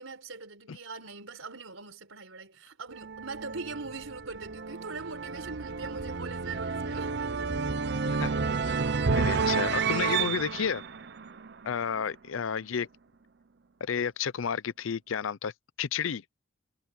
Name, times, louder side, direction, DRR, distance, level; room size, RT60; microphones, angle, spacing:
voice 1, 0.0-7.2 11.9-12.1, right 4 dB, 90° right, 4.3 m, -42 dB
sound 1, 2.9-11.9, right 5 dB, 55° right, 0.7 m, -31 dB
voice 2, 8.1-8.5 9.1-10.8 11.6-12.9 13.8-15.5 15.8-16.2, left 7 dB, 80° left, 0.5 m, -31 dB
head